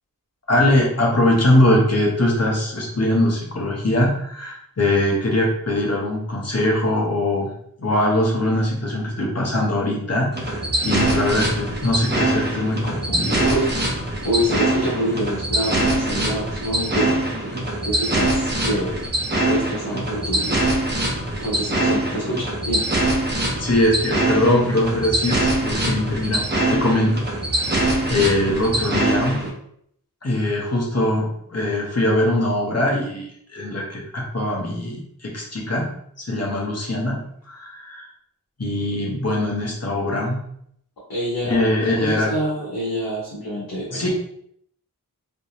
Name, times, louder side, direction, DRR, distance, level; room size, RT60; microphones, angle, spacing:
voice 1, 0.5-7.5 7.8-13.5 23.6-26.4 26.7-29.4 30.2-35.9 36.2-38.1 38.6-40.4 41.4-42.3 43.9-44.1, left 1 dB, 45° left, -2 dB, 1.0 m, -22 dB
sound 1, 10.3-29.5, right 1 dB, 30° right, 0.8 m, -23 dB
voice 2, 13.4-13.8 14.2-17.1 17.8-19.0 19.5-20.6 21.4-22.9 41.1-44.1, equal, 85° left, -7 dB, 1.1 m, -26 dB
3.5 x 2.9 x 2.7 m, 0.69 s
wide cardioid pair, 75°, 35 cm